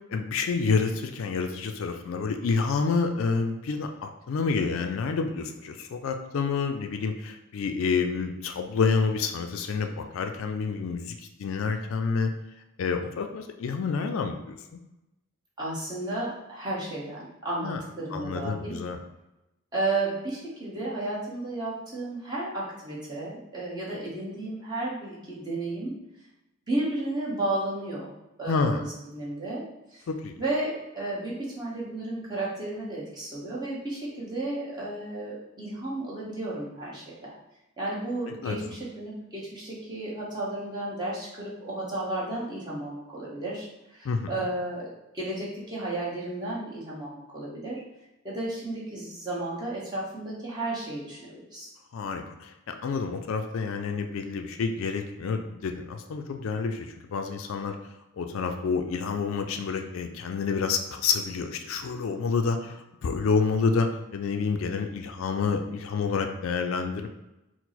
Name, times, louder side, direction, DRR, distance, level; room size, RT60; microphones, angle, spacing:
voice 1, 0.1-12.3 12.8-14.8 17.6-17.8 18.1-19.0 28.5-28.8 30.1-30.3 38.4-38.6 44.0-44.3 51.9-57.8 58.1-62.8 63.0-67.1, left 5 dB, 65° left, 6 dB, 0.3 m, -28 dB
voice 2, 15.6-18.7 19.7-25.9 26.7-29.6 29.9-30.1 30.4-37.3 37.8-44.9 45.1-47.8 48.2-51.7, right 2 dB, 20° right, -7 dB, 1.1 m, -33 dB
4.5 x 2.1 x 4.0 m, 0.96 s
head